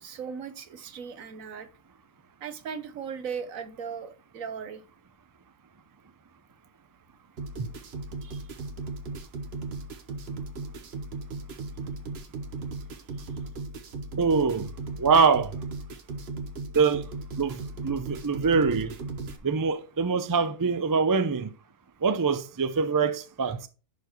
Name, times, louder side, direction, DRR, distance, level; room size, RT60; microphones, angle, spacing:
voice 1, 0.0-1.7 2.4-4.8 8.2-8.5, right 6 dB, 75° right, 1.4 m, -38 dB
sound 1, 7.4-19.4, right 3 dB, 50° right, 1.2 m, -37 dB
voice 2, 14.2-14.7 15.0-15.5 16.7-17.1 17.4-18.9 19.4-21.5 22.0-23.7, right 5 dB, 30° right, 0.3 m, -24 dB
10.5 x 4.8 x 3.0 m
omnidirectional pair, 1.4 m